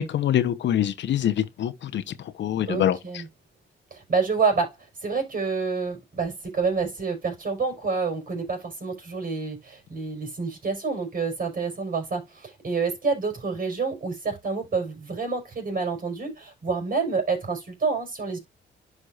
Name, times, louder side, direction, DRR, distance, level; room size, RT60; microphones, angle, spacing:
voice 1, 0.0-2.0 2.4-3.0, left 10 dB, 65° left, 0.9 m, -24 dB
voice 2, 2.6-3.3 3.9-4.7 5.0-18.4, right 4 dB, 45° right, 5.1 m, -28 dB
11.5 x 4.8 x 2.5 m
cardioid pair, 90°, 20 cm